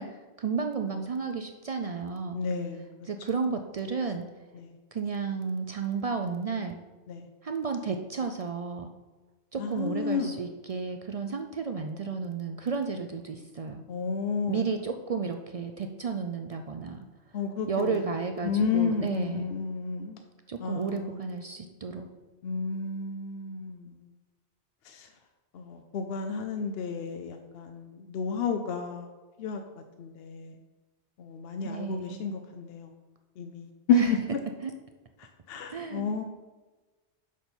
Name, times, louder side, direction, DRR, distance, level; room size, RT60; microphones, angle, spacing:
voice 1, 0.0-2.4 3.1-4.3 4.9-6.8 7.4-8.9 9.5-13.8 14.5-17.0 17.6-19.4 20.5-22.1 31.6-32.3 33.9-34.1 34.6-34.7 35.7-36.1, right 5 dB, 60° right, 5 dB, 0.3 m, -32 dB
voice 2, 2.3-2.8 4.5-4.7 7.1-7.3 9.6-10.3 13.9-14.6 17.3-18.1 18.4-20.2 20.6-21.2 22.4-24.1 24.8-25.1 25.5-29.1 29.4-29.6 30.0-30.6 31.2-32.9 33.4-34.2 35.2-36.2, left 6 dB, 65° left, 5 dB, 0.8 m, -31 dB
6.9 x 6.1 x 4.4 m, 1.2 s
omnidirectional pair, 1.2 m